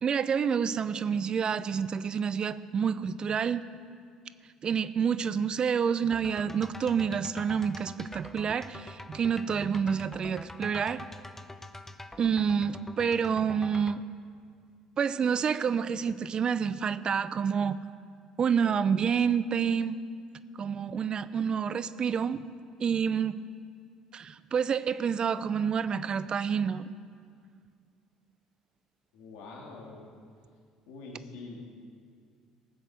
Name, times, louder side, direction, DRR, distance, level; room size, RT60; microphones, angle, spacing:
voice 1, 0.0-3.7 4.6-11.1 12.2-14.0 15.0-17.8 18.4-20.0 20.5-22.4 22.8-23.4 24.1-26.9, right 7 dB, 45° right, 14 dB, 0.6 m, -28 dB
sound 1, 6.1-14.0, left 2 dB, 15° left, 0.8 m, -45 dB
voice 2, 29.1-30.1 30.9-31.7, left 3 dB, 75° left, -1 dB, 2.5 m, -45 dB
19.5 x 7.7 x 6.2 m, 2.1 s
hypercardioid pair, 65°, 2 cm